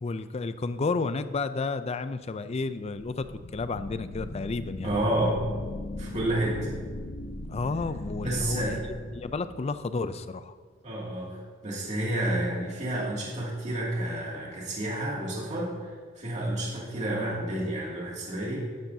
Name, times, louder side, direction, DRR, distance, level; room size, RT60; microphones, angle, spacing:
voice 1, 0.0-3.3 3.5-4.9 7.5-8.8 9.1-10.6, left 3 dB, 30° left, 12 dB, 0.4 m, -31 dB
sound 1, 3.1-9.9, left 1 dB, 70° left, 0.8 m, -39 dB
voice 2, 4.8-5.4 6.0-6.7 8.2-8.8 10.8-18.7, right 1 dB, 35° right, -5 dB, 2.4 m, -30 dB
11.5 x 11.5 x 2.7 m, 1.5 s
head